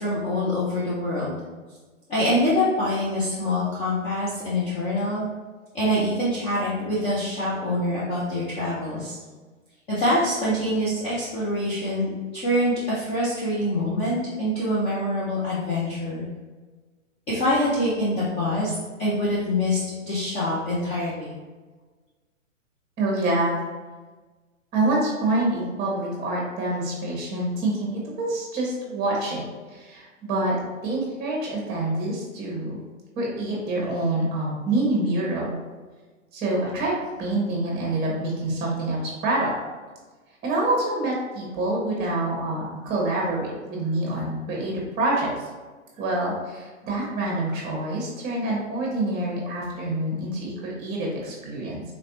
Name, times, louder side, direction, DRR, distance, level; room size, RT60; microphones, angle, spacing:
voice 1, 0.0-1.3 2.1-5.3 5.7-9.2 9.9-16.3 17.3-18.7 19.0-19.8 20.1-21.3, left 1 dB, 15° left, -9 dB, 0.5 m, -25 dB
voice 2, 23.0-23.6 24.7-30.6 30.8-32.8 33.2-35.5 36.3-39.5 40.4-45.4 46.0-51.8, right 2 dB, 25° right, -3 dB, 1.3 m, -26 dB
4.0 x 3.2 x 2.7 m, 1.3 s
hypercardioid pair, 135°, 40 cm